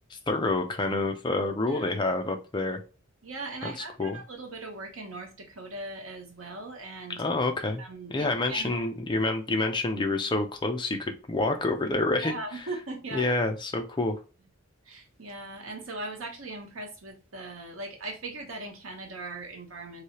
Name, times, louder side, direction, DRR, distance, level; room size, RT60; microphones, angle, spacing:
voice 1, 0.1-2.8 3.6-4.2 7.2-7.8 8.1-12.4 13.1-14.2, left 2 dB, 20° left, 0.5 m, -28 dB
voice 2, 3.2-7.2 7.8-8.9 12.2-13.4 14.9-20.0, right 2 dB, 80° right, 1.0 m, -39 dB
3.2 x 2.7 x 2.8 m
head